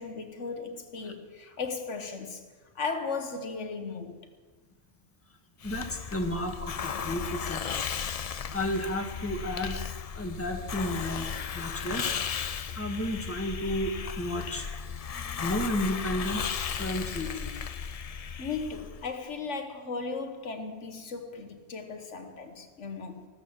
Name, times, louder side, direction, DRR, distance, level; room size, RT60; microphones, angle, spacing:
voice 1, 0.0-2.4 2.7-4.3 18.4-23.3, left 4 dB, 75° left, 1.6 m, -36 dB
Hiss, 5.6-19.1, left 7 dB, 50° left, 0.4 m, -35 dB
voice 2, 5.6-7.9 8.5-9.8 10.1-12.2 12.5-14.7 15.1-16.5 16.8-17.9, left 1 dB, 10° left, 1.7 m, -33 dB
14.0 x 13.5 x 7.2 m
omnidirectional pair, 1.2 m